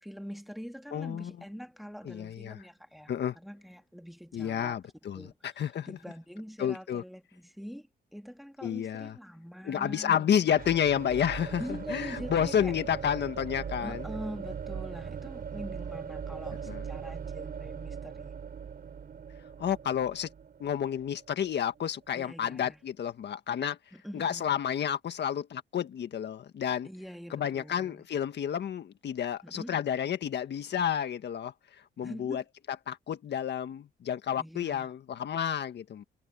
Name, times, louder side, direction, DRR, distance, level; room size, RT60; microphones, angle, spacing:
voice 1, 0.0-4.8 5.1-10.3 11.6-12.7 13.8-18.3 22.1-22.8 23.9-24.6 26.8-28.1 29.4-29.7 32.0-32.4 34.4-34.9, equal, ahead, 2.4 m, -44 dB
voice 2, 0.9-1.3 2.0-2.6 3.1-3.4 4.3-6.0 6.6-7.0 8.6-9.1 9.6-11.6 11.9-14.0 16.7-16.8 19.6-20.3 20.6-23.8 24.1-26.9 27.3-32.4 32.7-36.0, left 9 dB, 60° left, 1.7 m, -30 dB
sound 1, 10.5-22.3, right 7 dB, 50° right, 5.6 m, -40 dB
cardioid pair, 90°, 20 cm